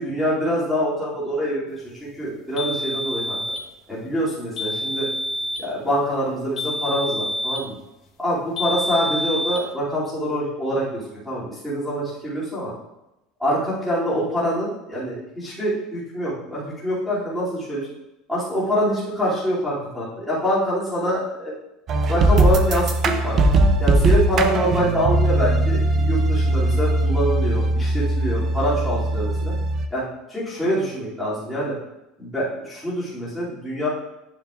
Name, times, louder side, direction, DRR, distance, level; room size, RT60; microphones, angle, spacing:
voice 1, 0.0-3.4 3.9-5.1 5.6-7.7 8.2-12.7 13.4-17.9 18.3-21.5 22.1-23.4 23.8-29.5 29.9-30.0 30.3-31.7 32.2-33.9, equal, ahead, -10 dB, 2.5 m, -25 dB
sound 1, 2.6-3.7 4.6-5.7 6.6-7.7 8.6-9.7, equal, 30° left, 1.0 m, -27 dB
sound 2, 21.9-29.9, right 2 dB, 30° right, 0.5 m, -20 dB
9.5 x 7.4 x 2.4 m, 0.93 s
cardioid pair, 175°, 0 cm